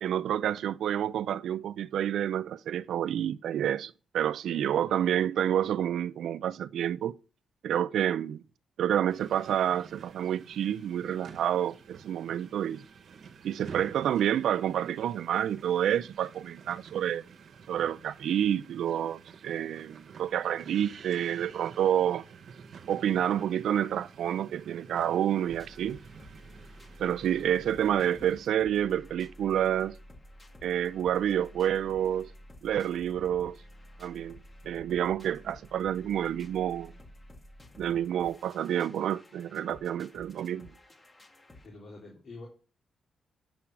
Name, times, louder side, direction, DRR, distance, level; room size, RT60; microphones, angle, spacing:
voice 1, 0.0-7.1 7.6-8.4 8.8-12.8 13.4-17.2 17.7-22.2 22.9-26.0 27.0-30.0 30.6-32.3 32.6-33.6 34.0-36.9 37.8-40.7, right 10 dB, 85° right, 0.5 m, -29 dB
voice 2, 4.8-5.2 41.5-42.5, left 2 dB, 45° left, 3.5 m, -48 dB
sound 1, 9.1-28.5, right 6 dB, 60° right, 1.1 m, -50 dB
sound 2, 25.5-41.7, left 1 dB, 20° left, 1.8 m, -52 dB
8.6 x 7.7 x 6.1 m
cardioid pair, 125°, 0 cm